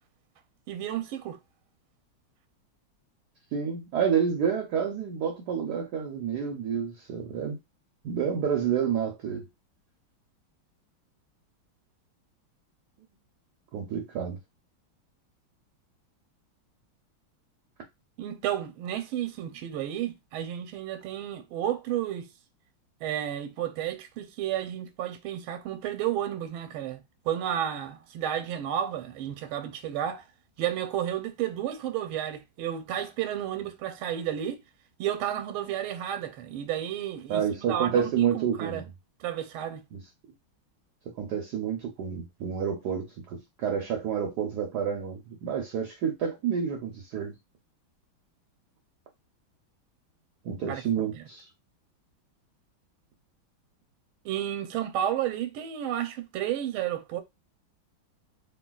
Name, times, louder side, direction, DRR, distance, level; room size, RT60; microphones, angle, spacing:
voice 1, 0.7-1.4 18.2-22.3 23.0-30.2 30.6-34.6 35.0-38.8 39.2-39.8 50.7-50.8 51.1-51.2 54.2-57.2, right 11 dB, 90° right, 1.4 m, -32 dB
voice 2, 3.5-7.6 8.0-9.4 13.7-14.4 37.3-38.8 39.9-40.0 41.2-47.3 50.4-51.5, right 7 dB, 70° right, 1.0 m, -29 dB
3.2 x 2.7 x 2.2 m
omnidirectional pair, 2.2 m